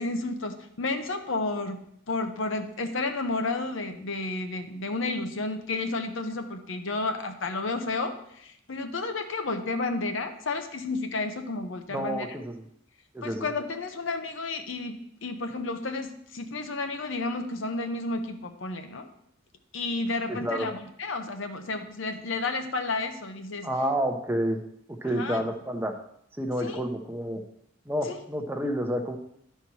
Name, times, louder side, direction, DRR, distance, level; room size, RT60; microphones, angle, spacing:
voice 1, 0.0-1.8 2.1-12.3 13.2-19.1 19.7-23.7 25.0-25.4 26.6-26.8 28.0-28.2, left 3 dB, 65° left, 7 dB, 0.8 m, -31 dB
voice 2, 11.9-12.6 13.1-13.5 20.3-20.7 23.6-24.6 25.0-25.9 26.4-27.4 27.9-29.2, equal, 10° right, 3 dB, 0.8 m, -29 dB
11.5 x 4.4 x 4.7 m, 0.72 s
head